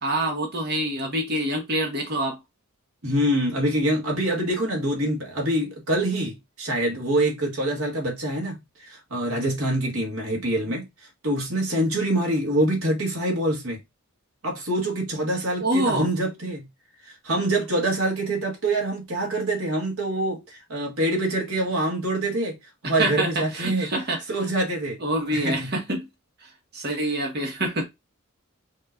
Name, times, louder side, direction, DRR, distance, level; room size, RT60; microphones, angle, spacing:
voice 1, 0.0-2.4 15.6-16.1 23.0-24.2 25.0-26.1 26.7-27.9, right 1 dB, 50° right, 1.6 m, -26 dB
voice 2, 3.0-10.9 11.2-13.8 14.4-16.7 17.0-22.6 22.8-23.9 24.3-25.0 25.3-25.7, right 1 dB, 80° right, 1.9 m, -25 dB
5.4 x 2.9 x 2.5 m
head